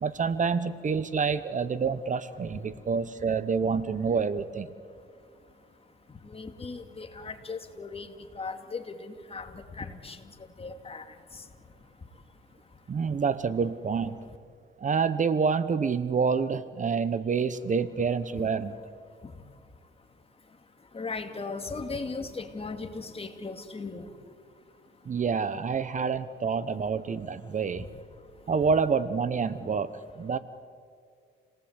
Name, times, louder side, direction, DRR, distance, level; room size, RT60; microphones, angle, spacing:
voice 1, 0.0-4.7 12.9-14.2 14.8-18.7 25.1-27.9 28.5-30.4, right 5 dB, 40° right, 14 dB, 0.9 m, -27 dB
voice 2, 6.2-10.2 10.6-11.4 20.9-24.1, left 4 dB, 30° left, 6 dB, 2.4 m, -38 dB
29.0 x 18.5 x 8.1 m, 2.2 s
cardioid pair, 90°, 20 cm